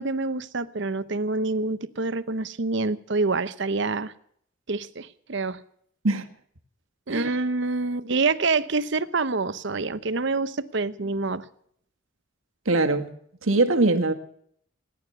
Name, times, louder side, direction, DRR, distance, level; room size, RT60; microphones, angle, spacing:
voice 1, 0.0-4.1 4.7-5.6 7.1-11.5, right 3 dB, 60° right, 0.9 m, -26 dB
voice 2, 12.7-13.1 13.4-14.1, right 2 dB, 85° right, 1.8 m, -22 dB
18.0 x 11.0 x 6.9 m
head